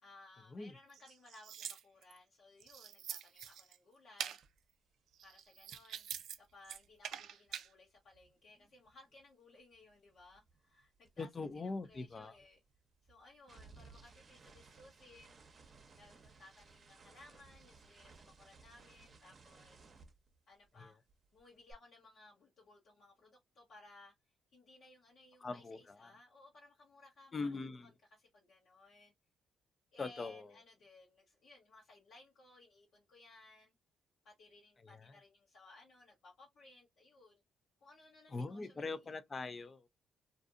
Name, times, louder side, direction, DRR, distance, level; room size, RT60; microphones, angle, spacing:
voice 1, 0.0-4.4 5.2-6.1 6.4-11.3 11.6-12.6 13.0-15.4 16.0-19.9 20.5-21.0 21.3-24.1 24.5-29.1 29.9-33.7 34.2-37.4 37.8-39.0 39.4-39.7, left 2 dB, 65° left, 0.9 m, -61 dB
sound 1, 0.9-2.2 2.6-3.8 4.2-4.4 5.1-6.4 6.6-7.7, right 9 dB, 75° right, 0.4 m, -45 dB
sound 2, 4.4-4.6 4.9-9.3 9.5-20.8 21.1-21.7, right 4 dB, 40° right, 0.7 m, -62 dB
voice 2, 11.2-12.4 20.8-20.9 25.4-26.1 27.3-27.9 30.0-30.5 34.8-35.2 38.3-39.9, left 3 dB, 30° left, 0.5 m, -42 dB
2.5 x 2.5 x 2.4 m
cardioid pair, 90°, 0 cm